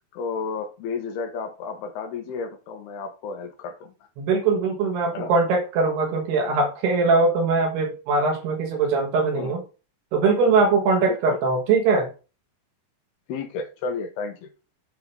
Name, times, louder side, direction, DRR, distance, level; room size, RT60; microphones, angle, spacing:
voice 1, 0.1-3.9 5.1-5.3 9.3-9.5 11.1-11.4 13.3-14.5, left 5 dB, 80° left, 2.8 m, -32 dB
voice 2, 4.2-9.6 10.1-12.1, right 4 dB, 75° right, 3.4 m, -21 dB
8.3 x 3.7 x 5.5 m
omnidirectional pair, 4.9 m